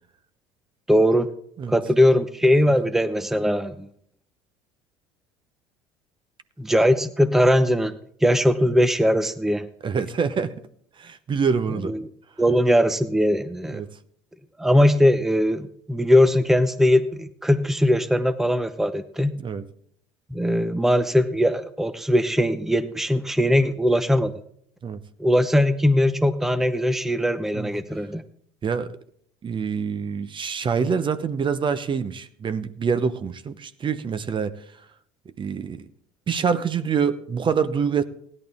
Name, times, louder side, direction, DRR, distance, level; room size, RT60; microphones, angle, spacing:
voice 1, 0.9-1.3 1.7-3.9 6.6-9.7 11.8-12.0 12.4-13.8 14.6-19.4 20.3-24.3 25.2-28.2, equal, ahead, 11 dB, 0.8 m, -20 dB
voice 2, 9.8-10.5 11.0-11.9 13.7-13.9 19.4-19.7 24.8-25.0 27.5-27.7 28.6-28.9 29.4-34.5 35.4-35.9 36.3-38.0, right 6 dB, 30° right, 12 dB, 0.9 m, -25 dB
16.5 x 11.0 x 3.6 m, 0.65 s
hypercardioid pair, 70°, 16 cm